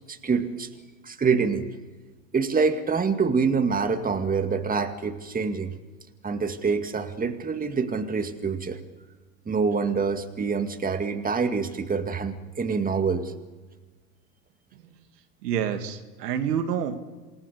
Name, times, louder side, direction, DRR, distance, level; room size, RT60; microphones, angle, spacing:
voice 1, 0.1-0.7 1.0-1.7 2.3-5.7 6.2-8.8 9.5-13.3, right 5 dB, 15° right, 7 dB, 2.1 m, -26 dB
voice 2, 14.7-15.1 15.4-17.0, right 8 dB, 75° right, 8 dB, 2.4 m, -28 dB
28.0 x 20.0 x 6.9 m, 1.3 s
hypercardioid pair, 90°, 48 cm